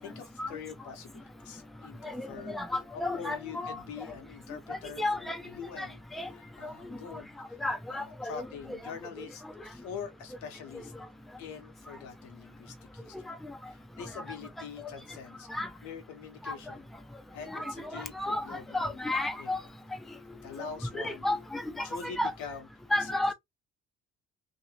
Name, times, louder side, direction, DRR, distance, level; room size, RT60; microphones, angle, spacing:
voice 1, 0.0-7.6 7.9-10.9 11.4-13.3 13.7-15.5 15.8-16.9 17.3-19.0 19.4-19.5 20.4-21.3 21.8-22.7 23.0-23.3, left 7 dB, 85° left, 1.0 m, -45 dB
voice 2, 2.5-3.8 4.7-5.4 5.8-5.9 6.1-6.3 6.6-6.7 7.6-8.5 13.3-13.4 14.8-14.9 15.5-15.7 16.5-16.6 17.4-19.6 20.6-20.7 20.9-22.3 22.9-23.3, left 1 dB, ahead, 0.6 m, -32 dB
2.9 x 2.7 x 2.8 m
supercardioid pair, 60°, 30 cm